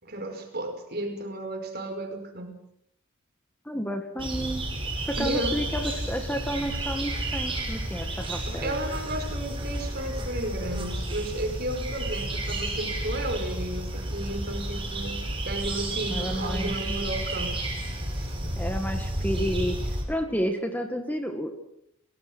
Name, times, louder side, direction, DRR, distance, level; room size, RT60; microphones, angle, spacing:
voice 1, 0.0-2.6 5.2-5.6 8.5-15.2 15.4-17.6 18.2-18.3, right 1 dB, 45° right, 6 dB, 5.2 m, -33 dB
voice 2, 3.7-4.6 5.1-8.8 16.1-16.9 18.6-21.5, equal, 10° left, 5 dB, 1.8 m, -31 dB
sound 1, 4.2-20.0, right 1 dB, 25° right, 6.5 m, -31 dB
29.5 x 19.0 x 6.2 m, 0.74 s
head